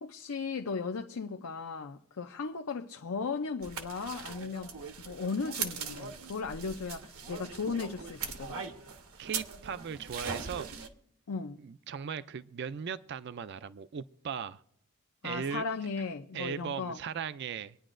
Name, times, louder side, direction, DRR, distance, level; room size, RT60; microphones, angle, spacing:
voice 1, 0.0-8.6 11.3-11.6 15.2-17.0, left 4 dB, 75° left, 0.6 m, -36 dB
sound 1, 3.6-10.9, right 5 dB, 80° right, 1.1 m, -40 dB
voice 2, 9.2-10.7 11.6-14.6 15.2-15.7 16.3-17.8, right 7 dB, 50° right, 0.3 m, -38 dB
25.0 x 9.8 x 2.5 m
head